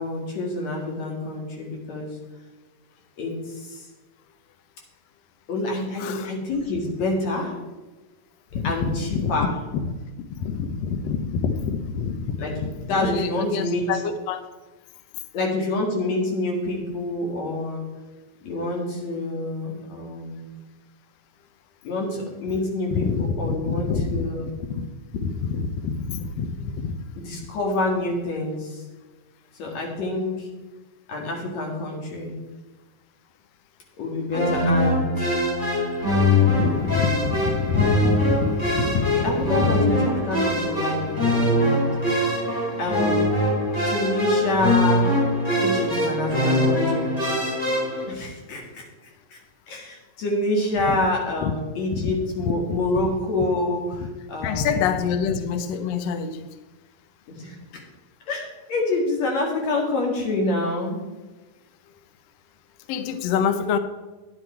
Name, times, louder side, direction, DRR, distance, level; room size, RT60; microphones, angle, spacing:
voice 1, 0.0-2.1 3.2-3.9 5.5-7.5 8.6-9.6 12.4-14.0 15.3-17.8 18.4-20.5 21.8-24.5 27.2-28.8 29.6-30.5 31.1-32.4 34.0-35.3 39.1-41.8 42.8-43.1 43.9-45.1 45.6-47.1 48.1-48.8 49.3-49.4 49.7-55.1 57.3-57.6 58.3-61.0, left 2 dB, 55° left, 0 dB, 3.2 m, -27 dB
voice 2, 8.5-9.5 9.7-9.8 10.3-12.4 12.9-14.4 22.9-24.2 24.8-24.9 25.2-26.9 36.5-39.3 39.6-39.7 51.4-51.5 52.0-52.1 52.7-52.8 54.4-56.5 62.9-63.8, left 6 dB, 85° left, 10 dB, 1.4 m, -26 dB
sound 1, 34.3-48.0, left 1 dB, 15° left, 3.3 m, -22 dB
10.0 x 9.8 x 4.4 m, 1.2 s
omnidirectional pair, 3.8 m